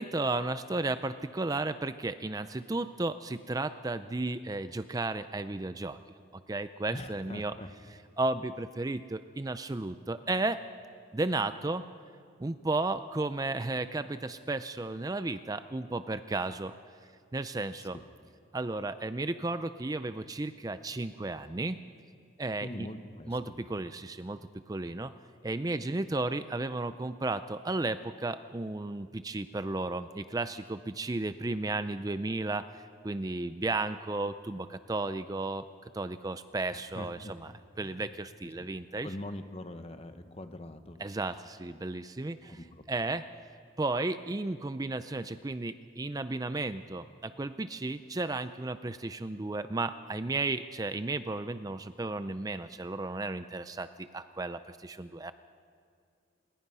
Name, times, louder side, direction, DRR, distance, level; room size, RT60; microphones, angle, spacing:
voice 1, 0.0-6.0 6.5-7.5 8.2-10.6 11.1-11.8 12.4-16.7 17.3-18.0 18.5-21.8 22.4-22.9 23.3-23.4 23.7-24.4 24.7-25.1 25.4-32.6 33.0-35.6 36.0-37.5 37.8-39.1 41.0-42.4 42.9-43.2 43.8-53.9 54.1-55.3, right 2 dB, 20° right, 11 dB, 0.4 m, -33 dB
voice 2, 6.9-7.7 17.9-18.0 22.6-23.5 36.7-37.3 37.8-38.1 38.6-38.7 39.0-41.0 42.4-42.6, left 1 dB, 30° left, 8 dB, 1.1 m, -43 dB
27.5 x 20.5 x 5.5 m, 2.3 s
head